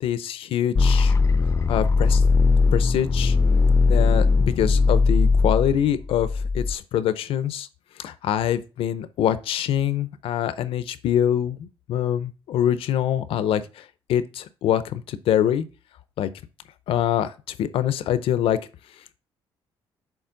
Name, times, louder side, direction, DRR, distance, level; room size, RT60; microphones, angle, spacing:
voice 1, 0.0-1.1 1.7-2.2 2.7-3.4 3.9-7.7 8.0-15.6 16.2-16.3 16.9-18.6, left 10 dB, 70° left, 0.6 m, -24 dB
sound 1, 0.8-6.7, left 4 dB, 30° left, 0.5 m, -19 dB
7.1 x 4.0 x 3.8 m
cardioid pair, 100°, 10 cm